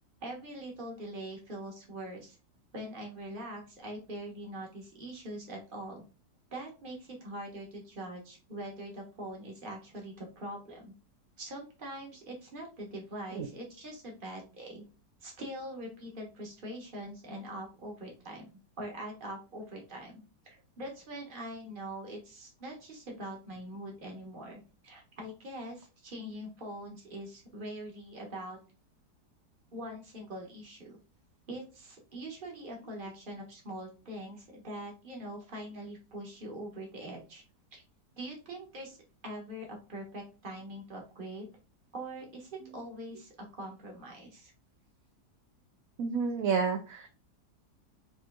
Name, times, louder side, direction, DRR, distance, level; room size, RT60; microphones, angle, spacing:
voice 1, 0.2-2.4 2.7-6.0 6.5-10.9 11.4-14.8 15.2-18.5 18.8-28.6 29.7-31.0 31.5-37.4 37.7-37.8 38.2-39.0 39.2-41.5 41.9-44.5, right 1 dB, 35° right, 0 dB, 1.4 m, -43 dB
voice 2, 46.0-47.1, right 5 dB, 65° right, 4 dB, 0.9 m, -30 dB
5.3 x 3.0 x 2.5 m, 0.32 s
omnidirectional pair, 1.8 m